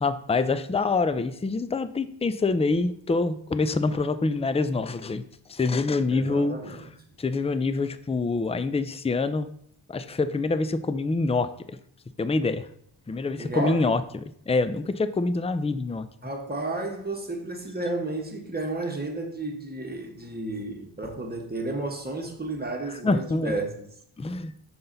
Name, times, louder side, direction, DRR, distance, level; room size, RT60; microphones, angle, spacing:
voice 1, 0.0-5.2 5.5-6.8 7.2-9.5 9.9-11.8 12.2-12.7 13.1-14.0 14.5-16.1 23.0-23.5 24.2-24.5, left 3 dB, 15° left, 0.4 m, -26 dB
voice 2, 6.1-6.9 13.4-13.9 16.2-23.7, right 2 dB, 20° right, 1.2 m, -32 dB
5.9 x 5.5 x 3.9 m
wide cardioid pair, 65°, 49 cm